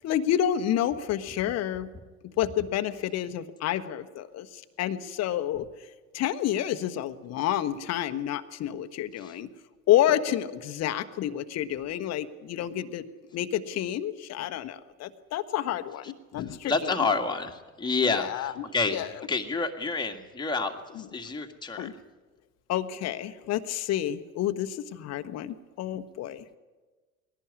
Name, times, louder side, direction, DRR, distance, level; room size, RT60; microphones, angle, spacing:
voice 1, 0.0-1.9 2.2-5.7 6.1-9.5 9.9-13.0 13.3-16.9 18.1-19.1 20.9-21.0 21.8-21.9 22.7-26.4, left 11 dB, 35° left, 10 dB, 1.1 m, -29 dB
voice 2, 16.5-21.9, left 4 dB, 10° left, 3 dB, 1.8 m, -29 dB
20.5 x 17.5 x 9.7 m, 1.3 s
figure-of-eight pair, 70°, 43 cm